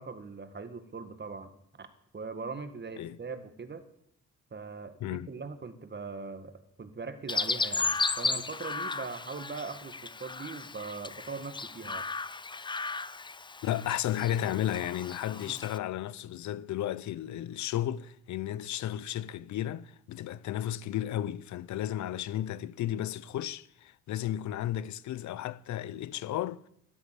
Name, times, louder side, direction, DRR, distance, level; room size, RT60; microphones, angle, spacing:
voice 1, 0.0-1.5 1.8-1.9 2.1-3.9 4.5-12.0 15.5-15.6, right 4 dB, 35° right, 1.9 m, -41 dB
voice 2, 5.0-5.3 13.6-26.7, left 12 dB, 75° left, 0.7 m, -33 dB
Chirp tweet, 7.3-15.8, left 4 dB, 15° left, 0.5 m, -35 dB
13.0 x 11.5 x 7.6 m
supercardioid pair, 65°, 29 cm